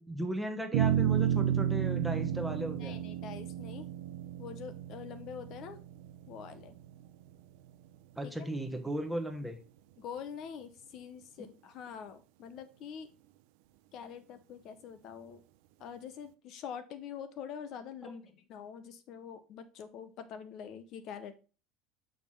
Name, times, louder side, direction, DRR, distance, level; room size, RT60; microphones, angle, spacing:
voice 1, 0.0-3.0 8.2-9.6 18.0-18.1, right 1 dB, 5° right, 5 dB, 1.1 m, -36 dB
sound 1, 0.7-7.3, right 10 dB, 75° right, 0.6 m, -32 dB
voice 2, 2.8-3.9 4.4-5.8 6.3-6.7 8.2-8.5 10.0-13.1 13.9-15.4 15.8-21.4, left 7 dB, 50° left, 11 dB, 0.6 m, -45 dB
6.4 x 3.5 x 5.6 m, 0.35 s
supercardioid pair, 135°, 0 cm